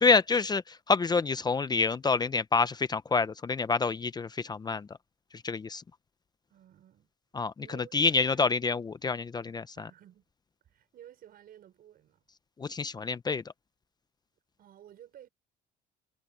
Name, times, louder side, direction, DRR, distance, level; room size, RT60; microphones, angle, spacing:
voice 1, 0.0-4.9 5.4-5.8 7.3-9.9 12.6-13.4, left 4 dB, 25° left, 0.6 m, -27 dB
voice 2, 6.5-7.1 7.6-8.5 9.8-10.2 10.6-12.2 14.6-15.3, right 11 dB, 60° right, 6.1 m, -54 dB
cardioid pair, 110°, 17 cm